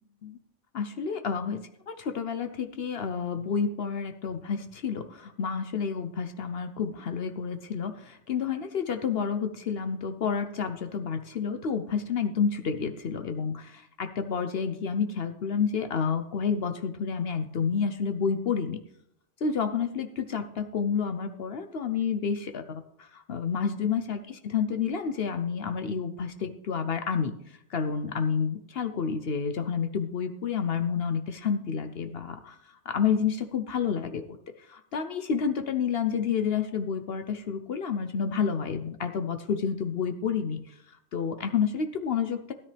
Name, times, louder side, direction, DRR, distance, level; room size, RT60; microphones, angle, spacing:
voice 1, 0.7-1.6 1.9-18.8 19.4-27.3 27.7-32.6 32.9-34.2 34.7-40.6 41.1-42.5, left 6 dB, 60° left, 8 dB, 0.9 m, -29 dB
16.0 x 9.9 x 3.3 m, 0.74 s
omnidirectional pair, 1.2 m